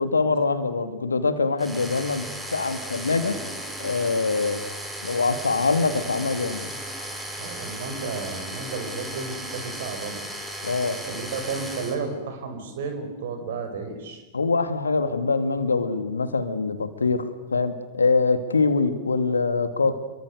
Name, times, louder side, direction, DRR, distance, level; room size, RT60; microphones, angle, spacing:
voice 1, 0.0-2.3 2.5-3.4 3.8-4.6 5.0-6.7 10.6-11.0 14.3-20.0, left 4 dB, 75° left, 11 dB, 2.1 m, -24 dB
sound 1, 1.6-12.0, right 1 dB, 10° right, 5.6 m, -35 dB
voice 2, 7.4-10.2 11.0-14.2, right 4 dB, 55° right, 7 dB, 5.5 m, -32 dB
28.5 x 23.5 x 6.8 m, 1.2 s
figure-of-eight pair, 90°, 0 cm